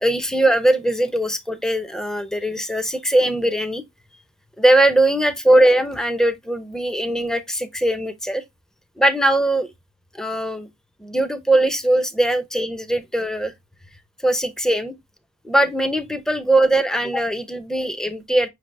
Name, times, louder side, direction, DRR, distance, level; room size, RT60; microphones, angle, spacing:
voice 1, 0.0-3.8 4.6-8.4 9.0-9.7 10.1-10.7 11.0-13.5 14.2-15.0 15.4-18.5, right 1 dB, 5° left, 0.5 m, -20 dB
5.7 x 3.3 x 2.5 m
head